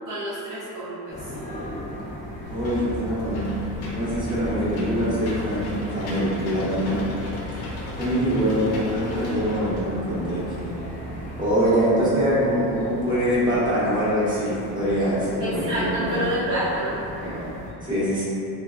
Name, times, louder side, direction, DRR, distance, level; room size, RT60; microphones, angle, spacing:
voice 1, 0.1-1.3 15.4-17.0, right 1 dB, 50° right, -9 dB, 0.6 m, -28 dB
sound 1, 1.1-17.7, equal, 20° left, 0.4 m, -37 dB
Engine / Mechanisms, 2.4-11.4, left 2 dB, 65° left, 0.7 m, -36 dB
voice 2, 2.5-3.5 3.9-7.0 8.0-10.8 11.4-16.3 17.2-17.5 17.8-18.2, equal, 10° right, -10 dB, 0.8 m, -24 dB
3.2 x 2.1 x 2.3 m, 2.7 s
cardioid pair, 120°, 42 cm